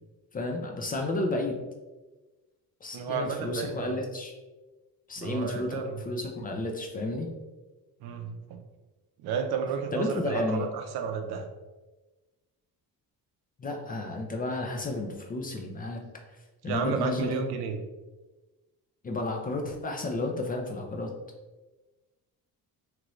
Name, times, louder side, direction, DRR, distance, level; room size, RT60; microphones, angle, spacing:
voice 1, 0.3-1.6 2.8-4.3 5.1-7.3 9.9-10.7 13.6-16.0 16.6-17.4 19.0-21.1, left 2 dB, 25° left, 2 dB, 0.3 m, -32 dB
voice 2, 2.9-4.0 5.2-6.1 8.0-8.6 9.2-11.5 16.7-17.8, right 6 dB, 80° right, 5 dB, 0.6 m, -32 dB
3.0 x 2.5 x 3.0 m, 1.2 s
cardioid pair, 125°, 37 cm